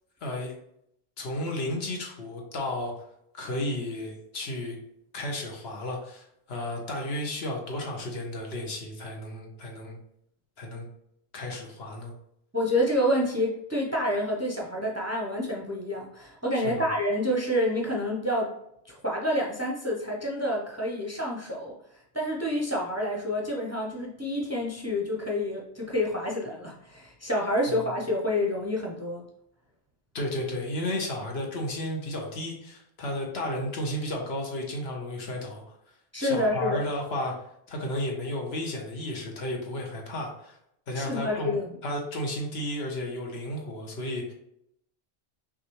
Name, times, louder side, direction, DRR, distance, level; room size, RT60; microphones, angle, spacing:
voice 1, 0.2-0.5 1.2-2.9 3.3-4.8 5.1-10.0 10.6-10.8 11.3-12.1 16.5-16.9 27.7-27.8 30.1-35.7 36.2-37.3 37.7-40.6 40.9-44.3, left 1 dB, 80° left, 0 dB, 1.2 m, -33 dB
voice 2, 12.5-18.5 18.9-21.7 22.1-29.2 36.1-36.8 40.9-41.7, left 1 dB, 20° right, -2 dB, 0.6 m, -28 dB
5.9 x 2.6 x 3.0 m, 0.76 s
omnidirectional pair, 1.0 m